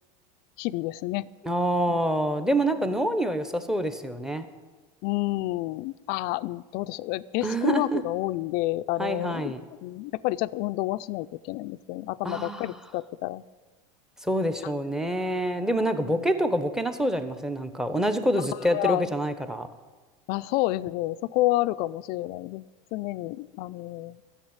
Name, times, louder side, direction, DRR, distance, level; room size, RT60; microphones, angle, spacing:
voice 1, 0.6-1.3 1.9-2.0 5.0-9.5 9.8-13.4 14.6-14.7 16.0-16.3 18.7-19.1 20.3-22.6 22.9-24.3, left 18 dB, 60° left, 15 dB, 0.5 m, -29 dB
voice 2, 1.4-4.5 7.4-8.0 9.0-9.6 12.2-12.7 14.2-19.7, right 1 dB, 5° right, 10 dB, 1.0 m, -26 dB
11.5 x 7.2 x 8.9 m, 1.3 s
supercardioid pair, 110°, 18 cm